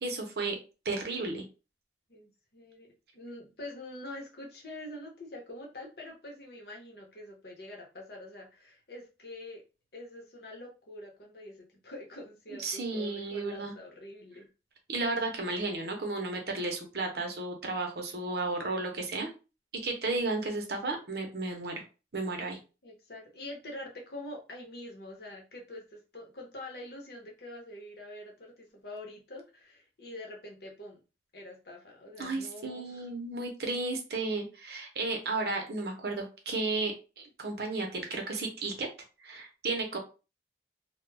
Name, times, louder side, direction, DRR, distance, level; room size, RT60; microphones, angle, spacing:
voice 1, 0.0-0.6 0.8-1.4 12.6-13.7 14.9-19.3 19.8-21.8 22.1-22.6 32.2-38.9 39.2-40.0, right 3 dB, 60° right, 3 dB, 0.7 m, -33 dB
voice 2, 2.1-2.9 3.1-9.6 9.9-14.5 22.8-31.0 31.3-33.1, left 1 dB, 60° left, 1 dB, 0.9 m, -45 dB
2.2 x 2.2 x 3.2 m, 0.31 s
head